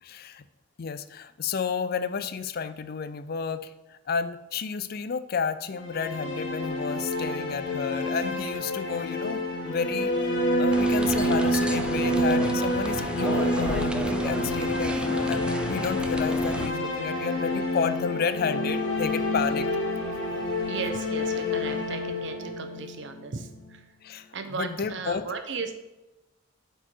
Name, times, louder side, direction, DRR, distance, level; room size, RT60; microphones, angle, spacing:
voice 1, 0.0-0.4 0.8-10.3 10.6-19.7 24.0-25.2, left 6 dB, 50° left, 12 dB, 0.4 m, -31 dB
sound 1, 5.7-23.7, left 1 dB, 75° left, 1.3 m, -28 dB
sound 2, 10.7-16.7, right 1 dB, 5° right, 0.5 m, -34 dB
voice 2, 20.7-23.8 24.3-25.7, right 4 dB, 65° right, 7 dB, 0.8 m, -36 dB
8.1 x 4.5 x 4.5 m, 1.0 s
head